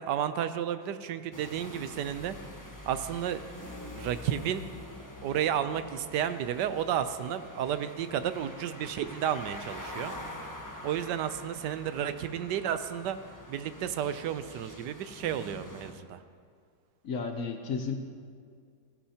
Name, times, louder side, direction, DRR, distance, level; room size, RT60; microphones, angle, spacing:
voice 1, 0.0-2.4 2.8-4.6 5.2-10.1 10.8-13.2 13.5-16.2, right 9 dB, 75° right, 11 dB, 1.2 m, -32 dB
sound 1, 1.3-15.9, left 1 dB, 15° left, 0.9 m, -45 dB
voice 2, 17.0-18.0, left 5 dB, 60° left, 5 dB, 1.0 m, -33 dB
16.5 x 16.5 x 2.9 m, 2.2 s
omnidirectional pair, 1.9 m